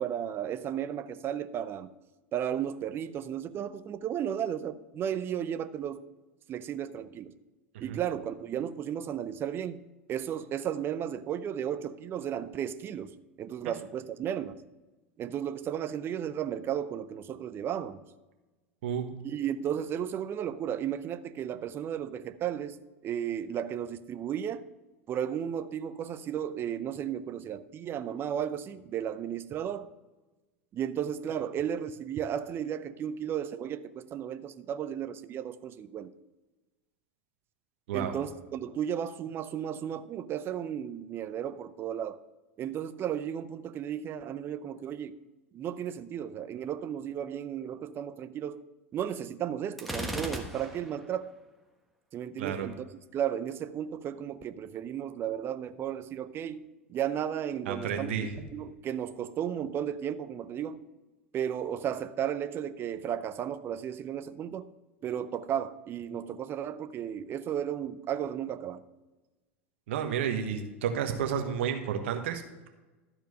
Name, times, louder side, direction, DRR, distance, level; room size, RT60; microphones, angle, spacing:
voice 1, 0.0-1.9 2.3-6.0 6.5-7.4 7.8-14.6 15.2-18.0 19.2-22.8 23.0-24.7 25.1-29.9 30.7-36.1 37.9-42.2 42.6-45.2 45.5-48.6 48.9-51.3 52.1-60.8 61.3-64.7 65.0-68.8, right 9 dB, 35° right, 0.6 m, -34 dB
Gunshot gunfire, 49.8-51.0, equal, ahead, 1.3 m, -36 dB
voice 2, 57.7-58.3 69.9-72.7, right 8 dB, 65° right, 1.2 m, -31 dB
13.0 x 4.6 x 5.4 m
hypercardioid pair, 90°, 7 cm